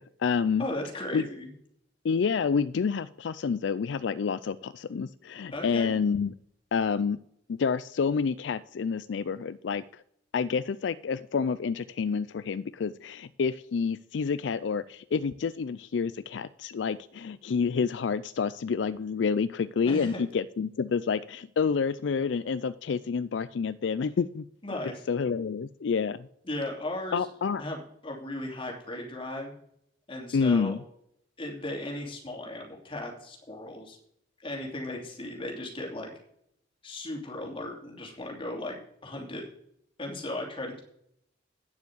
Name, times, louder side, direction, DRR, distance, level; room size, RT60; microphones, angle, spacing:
voice 1, 0.0-0.6 1.1-1.2 2.0-6.3 6.7-7.2 7.5-9.8 10.3-24.4 25.1-26.2 27.1-27.6 30.3-30.8, left 5 dB, 75° left, 16 dB, 0.4 m, -28 dB
voice 2, 0.6-1.5 5.5-6.0 19.8-20.3 24.6-25.0 26.4-27.3 27.6-29.5 30.1-30.8 31.4-34.0 34.4-36.1 36.8-39.4 40.0-40.8, left 1 dB, 30° left, 0 dB, 2.9 m, -36 dB
9.6 x 7.1 x 7.8 m, 0.71 s
head